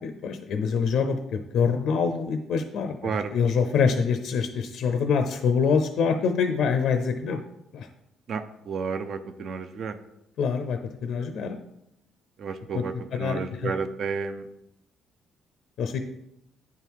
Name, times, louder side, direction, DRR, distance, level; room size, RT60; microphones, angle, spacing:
voice 1, 0.0-7.4 7.7-7.9 10.4-11.6 12.7-12.8 13.1-13.7 15.8-16.0, left 6 dB, 60° left, 6 dB, 0.5 m, -25 dB
voice 2, 8.3-9.9 12.4-14.4, right 5 dB, 45° right, 10 dB, 0.5 m, -31 dB
9.6 x 3.6 x 4.6 m, 0.83 s
cardioid pair, 165°, 0 cm